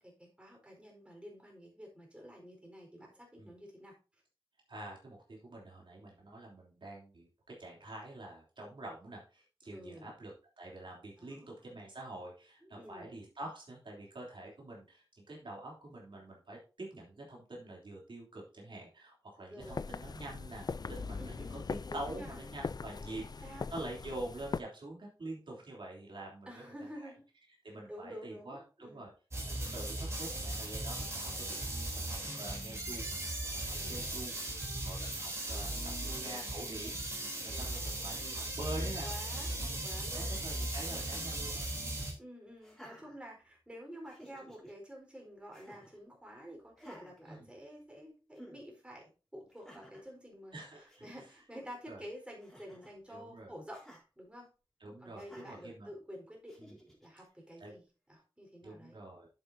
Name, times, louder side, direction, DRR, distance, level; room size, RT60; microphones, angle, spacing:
voice 1, 0.0-3.9 9.7-10.1 11.2-11.5 12.6-13.1 19.5-19.9 21.2-21.6 21.9-22.4 23.1-23.6 26.5-27.2 27.9-29.0 33.7-34.1 35.5-36.4 38.1-40.4 40.9-41.1 42.2-50.5 51.0-53.8 54.2-54.5 55.0-56.6 57.0-57.8 58.1-59.0, equal, 10° right, 0 dB, 4.3 m, -50 dB
voice 2, 4.7-21.6 21.9-26.6 27.6-29.1 29.5-31.6 31.9-33.0 33.5-34.3 34.8-35.7 36.0-39.1 39.6-39.8 40.1-42.0 47.3-47.5 50.5-51.0 51.9-52.0 53.1-53.5 54.8-55.9 56.6-56.7 57.6-57.7 58.6-59.3, right 1 dB, 70° right, -2 dB, 3.2 m, -46 dB
sound 1, 19.6-24.6, left 4 dB, 50° left, 0.4 m, -41 dB
sound 2, 29.3-42.1, right 1 dB, 30° right, 3.3 m, -38 dB
Laughter, 42.6-43.7 44.0-44.7 45.5-46.0 46.7-48.0 48.3-48.6 49.5-50.1 50.6-50.7 50.9-51.3 52.4-53.0 53.7-54.0 55.2-55.6 56.5-57.1, equal, 5° left, 3.8 m, -55 dB
10.5 x 7.9 x 2.7 m, 0.34 s
wide cardioid pair, 90°, 9 cm